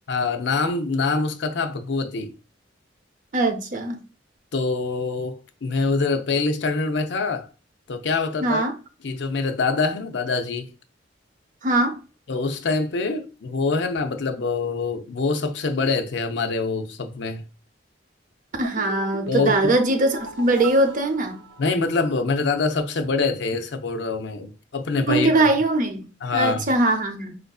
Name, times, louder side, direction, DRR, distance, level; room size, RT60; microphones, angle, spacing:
voice 1, 0.1-2.3 4.5-7.5 7.9-8.6 9.0-10.7 12.3-17.4 19.3-19.7 21.6-25.5 26.2-26.7, left 4 dB, 65° left, 0.5 m, -25 dB
voice 2, 3.3-4.0 8.4-8.7 11.6-12.0 18.6-21.4 25.1-26.1 26.3-27.4, right 2 dB, 45° right, 0.6 m, -21 dB
sound 1, 18.6-22.1 22.3-22.4, right 3 dB, 90° right, 0.7 m, -37 dB
4.4 x 2.5 x 2.3 m
head